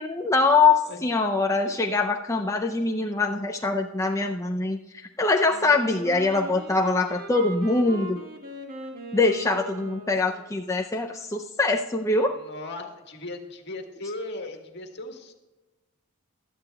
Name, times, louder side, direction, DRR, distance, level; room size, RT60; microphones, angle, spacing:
voice 1, 0.0-8.2 9.1-12.4, left 3 dB, 15° left, 3 dB, 0.5 m, -23 dB
Wind instrument woodwind instrument, 5.5-10.5, equal, 45° right, 1.8 m, -39 dB
voice 2, 12.3-15.3, left 2 dB, 55° left, 4 dB, 1.7 m, -37 dB
16.5 x 12.0 x 2.3 m, 1.1 s
head